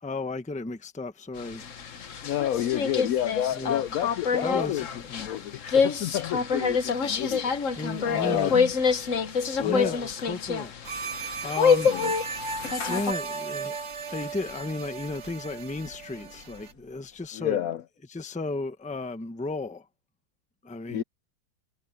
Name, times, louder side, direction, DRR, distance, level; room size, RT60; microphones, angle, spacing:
voice 1, 0.0-1.7 3.5-3.8 4.4-5.0 7.8-8.6 9.6-10.7 11.2-11.9 12.9-13.8 14.1-17.6 18.1-19.9 20.6-21.0, left 3 dB, 5° left, 0.5 m, -34 dB
sound 1, 1.4-13.1, left 5 dB, 45° left, 1.3 m, -27 dB
voice 2, 2.2-4.9 5.1-7.5 8.1-8.7 9.6-10.0 11.9-12.1 17.3-17.8 20.9-21.0, left 11 dB, 80° left, 0.7 m, -29 dB
sound 2, 10.8-16.7, right 4 dB, 55° right, 2.0 m, -36 dB
Clapping / Meow, 11.2-17.3, left 4 dB, 60° left, 3.0 m, -50 dB
omnidirectional pair, 2.2 m